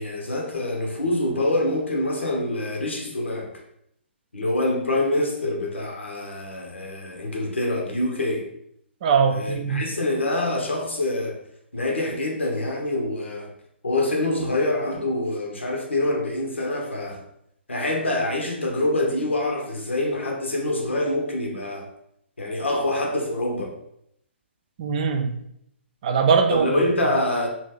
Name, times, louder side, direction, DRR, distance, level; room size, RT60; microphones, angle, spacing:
voice 1, 0.0-3.5 4.3-8.5 9.3-11.4 11.7-13.5 13.8-17.2 17.7-21.9 22.4-23.8 26.5-27.5, left 1 dB, 75° left, 1 dB, 0.8 m, -25 dB
voice 2, 9.0-9.8 24.8-25.3 26.0-26.8, right 6 dB, 35° right, 5 dB, 0.4 m, -21 dB
2.9 x 2.5 x 3.6 m, 0.73 s
figure-of-eight pair, 125°, 7 cm